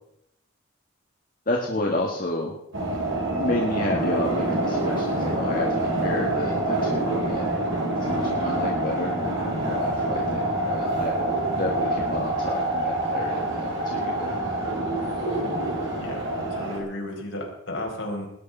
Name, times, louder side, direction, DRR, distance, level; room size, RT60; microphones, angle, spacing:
voice 1, 1.5-2.6 3.4-7.6 8.0-14.4, left 1 dB, 40° left, -1 dB, 1.8 m, -31 dB
sound 1, 2.7-16.8, right 1 dB, 70° right, 4.4 m, -26 dB
voice 2, 16.0-18.3, left 1 dB, 70° left, 0 dB, 4.9 m, -33 dB
19.5 x 9.8 x 5.5 m, 0.80 s
head